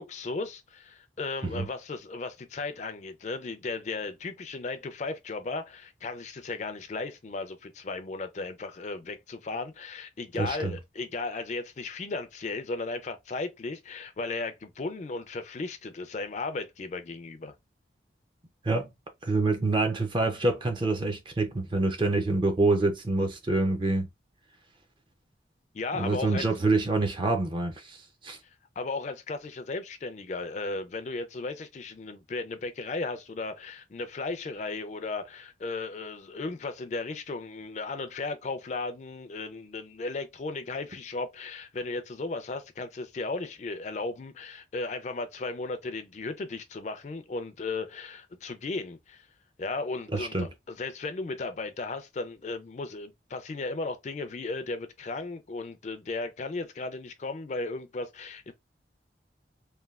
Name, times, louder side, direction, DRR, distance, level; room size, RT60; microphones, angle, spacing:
voice 1, 0.0-17.5 25.7-26.4 28.8-49.3 49.6-58.5, left 3 dB, 40° left, 0.4 m, -35 dB
voice 2, 10.4-10.8 18.6-18.9 19.2-24.1 26.0-28.4 50.1-50.5, right 2 dB, 25° right, 0.4 m, -26 dB
3.2 x 2.2 x 2.3 m
head